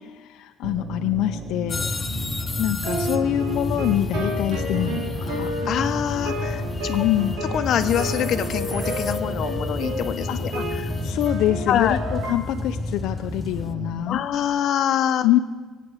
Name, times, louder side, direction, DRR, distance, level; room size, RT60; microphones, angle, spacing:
voice 1, 0.1-1.9 2.6-5.5 6.9-7.3 10.3-10.4 11.0-14.2 15.2-15.4, left 13 dB, 70° left, 7 dB, 0.5 m, -25 dB
sound 1, 0.6-14.2, right 2 dB, 35° right, 1.1 m, -35 dB
sound 2, 1.7-13.7, left 3 dB, 20° left, 0.5 m, -31 dB
sound 3, 2.8-12.4, equal, 80° right, 3.3 m, -31 dB
voice 2, 5.7-6.9 7.5-10.6 11.7-12.0 14.1-15.3, left 9 dB, 50° left, 8 dB, 0.9 m, -25 dB
22.5 x 8.5 x 6.4 m, 1.4 s
cardioid pair, 150°, 0 cm